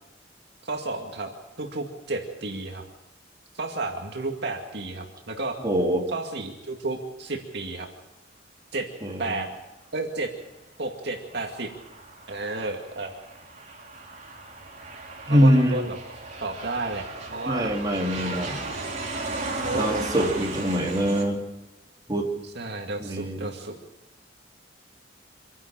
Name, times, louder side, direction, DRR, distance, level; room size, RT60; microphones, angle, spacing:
voice 1, 0.6-1.3 1.6-2.8 3.5-5.6 6.1-7.9 8.7-8.9 9.2-9.5 9.9-10.3 10.8-11.7 12.3-13.1 15.3-16.0 16.4-17.7 19.5-20.0 22.4-23.8, right 2 dB, 65° right, 2 dB, 2.3 m, -32 dB
voice 2, 5.6-6.1 9.0-9.3 15.3-15.9 17.5-18.7 19.7-21.4 22.1-22.3 23.0-23.5, equal, 20° right, 0 dB, 3.0 m, -23 dB
Aircraft, 11.0-21.2, right 2 dB, 40° right, 3.9 m, -36 dB
26.5 x 11.0 x 8.9 m, 1.0 s
head